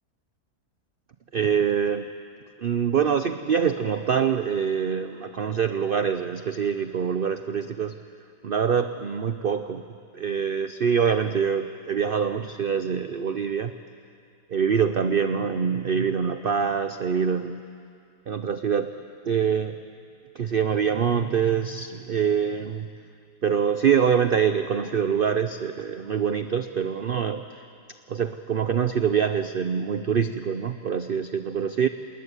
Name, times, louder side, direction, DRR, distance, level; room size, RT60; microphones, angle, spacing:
voice 1, 1.3-2.1 2.6-7.9 8.4-9.8 10.1-13.7 14.5-17.6 18.3-18.9 19.2-19.8 20.3-22.9 23.4-27.4 28.1-31.9, right 7 dB, 65° right, 9 dB, 0.5 m, -25 dB
19.5 x 19.0 x 9.7 m, 2.4 s
omnidirectional pair, 1.8 m